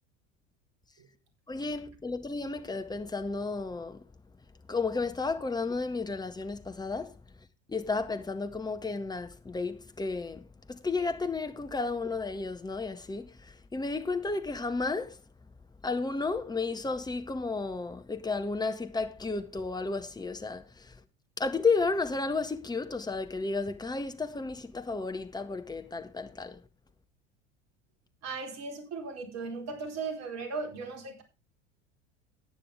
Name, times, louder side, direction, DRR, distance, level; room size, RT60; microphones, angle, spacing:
voice 1, 1.5-4.1 4.7-7.2 7.7-15.2 15.8-21.0 21.4-26.6, left 3 dB, 10° left, 1.7 m, -33 dB
voice 2, 28.2-31.2, right 4 dB, 45° right, 4.4 m, -37 dB
15.5 x 9.7 x 3.5 m
figure-of-eight pair, 75°, 37 cm